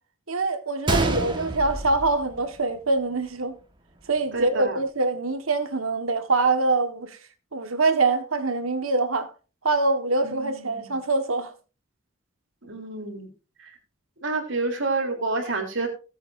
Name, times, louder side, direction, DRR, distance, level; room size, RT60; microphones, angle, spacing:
voice 1, 0.3-3.5 4.1-7.2 7.5-9.3 9.6-11.5, right 3 dB, 80° right, 1.6 m, -24 dB
Gunshot gunfire, 0.9-2.9 3.2-3.3 4.0-4.2, right 2 dB, 20° right, 1.5 m, -27 dB
voice 2, 4.3-4.8 10.2-11.0 12.6-13.3 13.6-13.8 14.2-15.9, right 3 dB, 60° right, 3.6 m, -29 dB
18.0 x 8.0 x 2.7 m
head